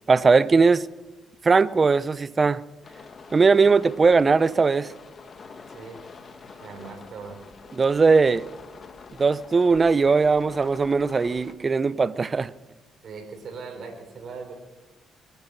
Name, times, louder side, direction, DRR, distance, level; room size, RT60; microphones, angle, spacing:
voice 1, 0.1-0.9 1.4-2.6 3.3-4.9 7.8-8.5 9.2-12.5, right 4 dB, 35° right, 0.5 m, -19 dB
sound 1, 2.8-11.5, left 4 dB, 40° left, 1.4 m, -46 dB
voice 2, 5.7-6.0 6.6-7.4 13.0-14.5, right 5 dB, 60° right, 3.6 m, -39 dB
22.5 x 10.0 x 6.0 m
cardioid pair, 90°, 0 cm